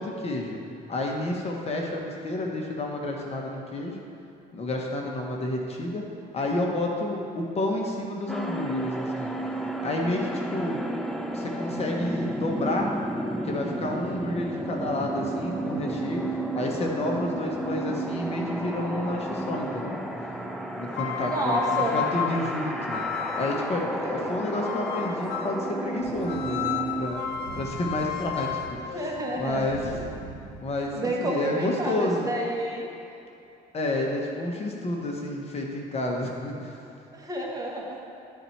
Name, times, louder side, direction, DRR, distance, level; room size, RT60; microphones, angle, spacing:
voice 1, 0.0-4.0 4.5-6.1 6.3-9.3 9.8-10.8 11.3-12.9 13.4-20.0 20.8-23.0 23.3-27.2 27.6-29.0 29.4-30.0 30.6-32.3 33.7-36.8, left 1 dB, 40° left, 0 dB, 1.0 m, -30 dB
sound 1, 8.3-27.1, right 1 dB, ahead, 0.4 m, -32 dB
sound 2, 20.9-23.8 24.6-25.7 26.3-30.2, left 11 dB, 85° left, 0.5 m, -33 dB
voice 2, 21.2-22.0 28.9-29.6 31.0-32.9 37.1-38.2, right 1 dB, 20° right, -2 dB, 1.2 m, -30 dB
Thunder, 26.0-31.1, right 4 dB, 55° right, 1.0 m, -43 dB
11.0 x 4.1 x 4.4 m, 2.7 s
cardioid pair, 110°, 17 cm